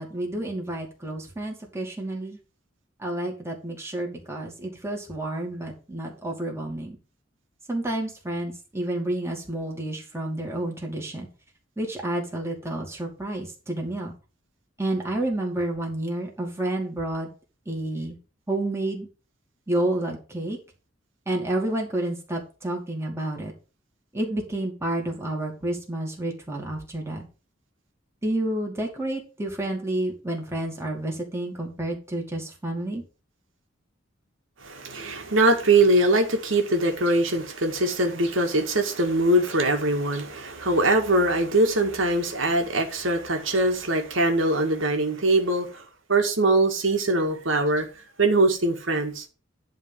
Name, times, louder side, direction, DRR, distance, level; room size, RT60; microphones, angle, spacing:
voice 1, 0.0-2.4 3.0-7.0 7.7-11.3 11.8-14.1 14.8-17.3 17.7-18.2 18.5-19.1 19.7-20.6 21.3-23.5 24.1-27.2 28.2-33.0, right 1 dB, 15° right, 2.6 m, -30 dB
voice 2, 34.6-45.8 46.1-47.9 48.2-49.2, right 2 dB, 90° right, 1.9 m, -22 dB
10.5 x 3.8 x 7.3 m
head